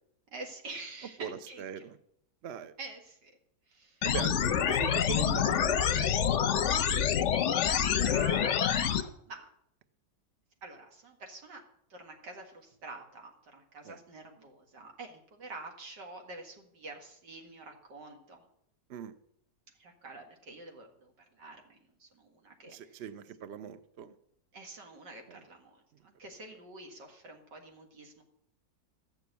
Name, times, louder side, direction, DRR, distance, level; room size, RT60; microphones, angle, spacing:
voice 1, 0.3-1.6 2.8-3.3 3.7-4.1 7.4-7.6 7.8-9.5 10.6-11.6 11.9-18.4 19.8-23.0 24.5-28.2, right 3 dB, 85° right, 2 dB, 2.7 m, -47 dB
voice 2, 1.2-2.0 2.4-2.7 4.0-6.2 6.4-6.5 13.8-14.0 18.9-19.1 22.7-24.1 25.3-25.4, right 8 dB, 55° right, 12 dB, 0.8 m, -40 dB
sound 1, 4.0-9.0, left 8 dB, 60° left, 0.8 m, -27 dB
13.5 x 6.9 x 8.2 m, 0.73 s
omnidirectional pair, 1.8 m